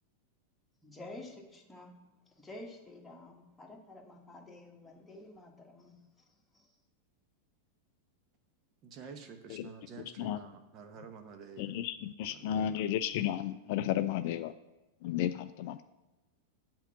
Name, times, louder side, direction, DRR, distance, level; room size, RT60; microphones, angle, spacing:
voice 1, 0.8-1.9 2.4-5.9, left 2 dB, 10° left, 1.5 m, -49 dB
voice 2, 8.8-11.8 12.3-12.7, right 5 dB, 35° right, 1.0 m, -49 dB
voice 3, 11.6-14.5 15.0-15.8, left 11 dB, 50° left, 0.3 m, -33 dB
8.1 x 4.5 x 6.9 m
figure-of-eight pair, 90°, 0 cm